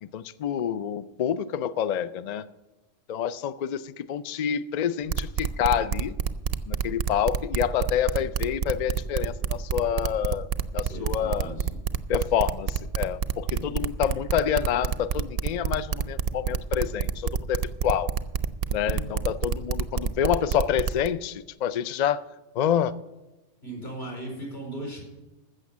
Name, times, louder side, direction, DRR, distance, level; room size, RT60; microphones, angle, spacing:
voice 1, 0.0-2.5 3.1-6.2 6.7-10.5 10.7-11.5 12.1-18.1 18.7-22.2 22.5-23.0, left 9 dB, 80° left, 14 dB, 0.3 m, -27 dB
sound 1, 5.1-21.1, right 7 dB, 60° right, 0.7 m, -27 dB
voice 2, 10.9-11.7 13.5-13.9 18.9-19.2 23.6-25.0, right 1 dB, 55° left, 0 dB, 4.9 m, -38 dB
14.5 x 6.5 x 7.2 m, 1.1 s
omnidirectional pair, 1.3 m